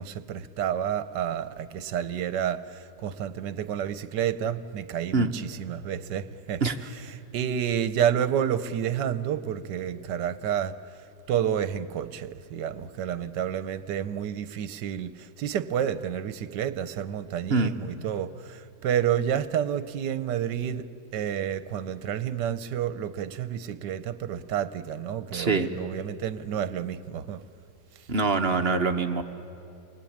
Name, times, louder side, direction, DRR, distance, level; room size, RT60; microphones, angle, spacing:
voice 1, 0.0-6.6 7.3-11.0 11.3-27.4 28.0-28.1, right 9 dB, 75° right, 1.5 m, -30 dB
voice 2, 25.3-25.7 28.1-29.2, right 4 dB, 40° right, 1.1 m, -24 dB
29.0 x 23.0 x 8.7 m
omnidirectional pair, 1.9 m